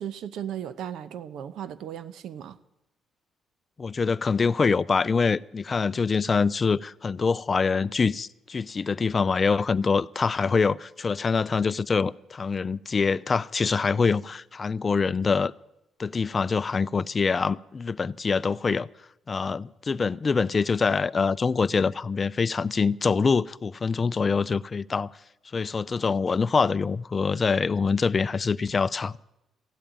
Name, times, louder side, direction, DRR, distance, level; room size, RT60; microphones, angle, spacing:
voice 1, 0.0-2.6, right 9 dB, 80° right, 0.8 m, -36 dB
voice 2, 3.8-15.5 16.0-18.9 19.3-25.1 25.5-29.2, left 5 dB, 35° left, 0.4 m, -25 dB
14.5 x 8.6 x 9.2 m
cardioid pair, 90°, 0 cm